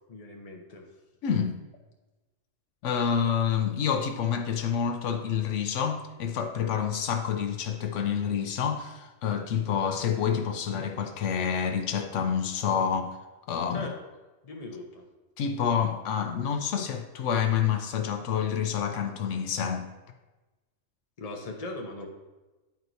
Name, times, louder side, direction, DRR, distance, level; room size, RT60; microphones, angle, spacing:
voice 1, 0.1-0.9 13.7-13.9 14.4-15.1 21.2-22.1, left 2 dB, 35° left, 1 dB, 0.9 m, -39 dB
voice 2, 1.2-1.6 2.8-13.2 13.5-13.9 15.4-19.9, left 7 dB, 80° left, 6 dB, 0.9 m, -28 dB
10.0 x 4.5 x 2.7 m, 1.1 s
omnidirectional pair, 1.2 m